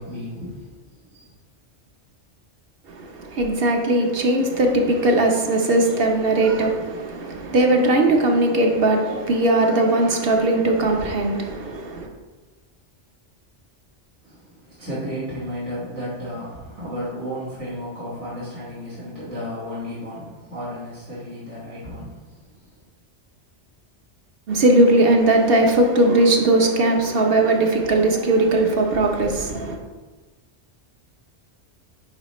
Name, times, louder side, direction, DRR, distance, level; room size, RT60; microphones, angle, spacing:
voice 1, 0.0-1.3 14.2-22.6, equal, 90° right, 2.1 m, -33 dB
voice 2, 2.9-12.1 24.5-29.8, right 2 dB, 55° right, 1.0 m, -19 dB
9.8 x 4.1 x 3.0 m
omnidirectional pair, 1.2 m